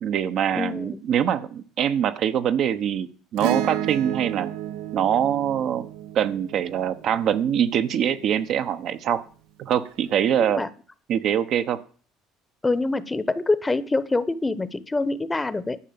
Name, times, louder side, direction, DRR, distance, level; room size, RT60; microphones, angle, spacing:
voice 1, 0.0-4.5 4.9-5.9 6.1-9.2 9.6-10.6 11.1-11.8, right 9 dB, 60° right, 10 dB, 1.1 m, -24 dB
voice 2, 0.5-1.0 10.4-10.7 12.6-15.8, left 3 dB, 15° left, 16 dB, 1.0 m, -25 dB
Acoustic guitar / Strum, 3.4-8.0 9.9-10.0, right 9 dB, 85° right, 1.1 m, -32 dB
11.5 x 5.5 x 8.8 m, 0.42 s
supercardioid pair, 90°, 0 cm